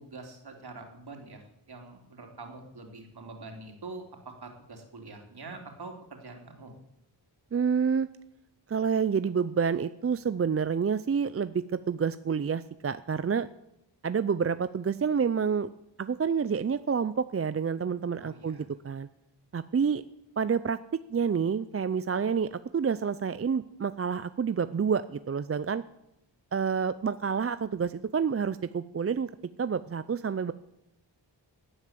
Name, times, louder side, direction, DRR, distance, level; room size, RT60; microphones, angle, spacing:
voice 1, 0.0-6.7 18.2-18.7, right 3 dB, 60° right, 3 dB, 3.6 m, -45 dB
voice 2, 7.5-8.1 8.7-13.5 14.0-15.7 16.0-19.1 19.5-20.0 20.4-25.8 26.5-29.3 29.6-30.5, right 6 dB, 35° right, 14 dB, 0.5 m, -28 dB
18.0 x 9.8 x 7.6 m, 0.87 s
wide cardioid pair, 110°, 43 cm